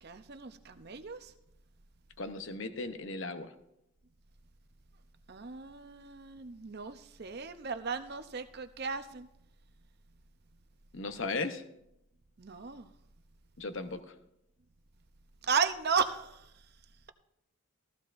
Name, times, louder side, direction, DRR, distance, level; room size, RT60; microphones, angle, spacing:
voice 1, 0.0-1.3 5.3-9.3 12.4-12.9 15.4-16.4, right 5 dB, 45° right, 9 dB, 0.7 m, -35 dB
voice 2, 2.2-3.5 10.9-11.6 13.6-14.0, left 3 dB, 60° left, 8 dB, 0.8 m, -36 dB
15.5 x 14.0 x 2.6 m, 0.83 s
head